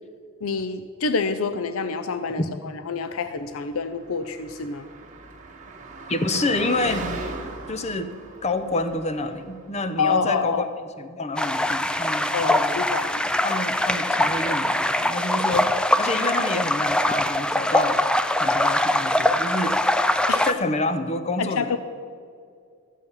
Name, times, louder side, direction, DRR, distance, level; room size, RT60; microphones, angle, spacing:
voice 1, 0.4-2.4 2.9-4.9 10.0-10.6 12.3-13.3 20.3-20.5 21.4-21.8, left 5 dB, 65° left, 10 dB, 0.5 m, -27 dB
Car passing by, 3.8-9.8, right 2 dB, 35° right, 1.7 m, -37 dB
voice 2, 6.1-7.1 7.7-8.1 8.4-10.7 11.0-12.9 13.4-18.0 18.4-19.8 20.4-21.8, left 2 dB, 30° left, 10 dB, 0.7 m, -28 dB
sound 1, 11.4-20.5, left 1 dB, 5° left, 0.3 m, -22 dB
14.0 x 8.2 x 5.7 m, 2.2 s
head